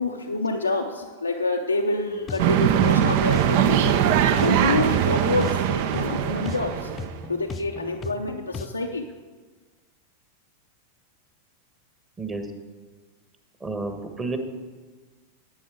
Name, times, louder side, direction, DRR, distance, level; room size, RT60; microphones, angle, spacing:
voice 1, 0.0-4.0 4.4-7.0 7.3-9.1, left 2 dB, 80° left, 3 dB, 0.6 m, -27 dB
sound 1, 2.1-8.7, left 4 dB, 25° left, 0.5 m, -37 dB
sound 2, 2.4-7.2, right 9 dB, 50° right, 0.6 m, -21 dB
voice 2, 13.6-14.4, right 3 dB, 15° right, 5 dB, 1.3 m, -30 dB
11.0 x 8.3 x 5.0 m, 1.4 s
figure-of-eight pair, 90°, 0 cm